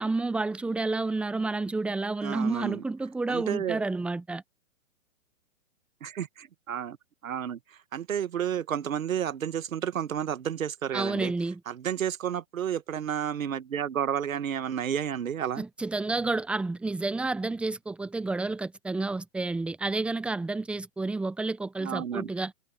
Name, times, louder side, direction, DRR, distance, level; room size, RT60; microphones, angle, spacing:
voice 1, 0.0-4.4 10.9-11.6 15.6-22.5, right 3 dB, 5° right, 0.6 m, -30 dB
voice 2, 2.2-2.8 3.3-3.8 6.0-7.0 7.2-11.3 11.7-15.6 21.8-22.3, right 9 dB, 80° right, 1.4 m, -31 dB
hypercardioid pair, 135°, 40 cm